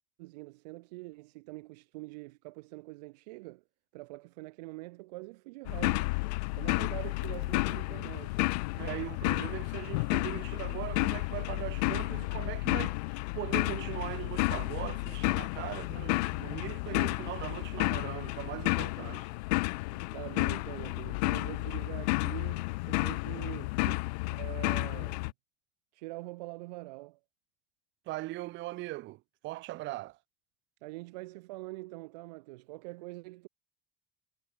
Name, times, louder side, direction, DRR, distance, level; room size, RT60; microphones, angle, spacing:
voice 1, 0.2-3.6 3.9-6.2 6.6-8.5 15.7-16.3 19.9-23.8 24.3-25.2 25.9-27.2 30.8-33.5, right 22 dB, 85° right, 4.1 m, -44 dB
sound 1, 5.7-25.3, left 25 dB, 85° left, 1.1 m, -32 dB
voice 2, 8.8-19.3 23.9-24.0 28.1-30.2, right 19 dB, 65° right, 6.3 m, -40 dB
supercardioid pair, 100°, 21 cm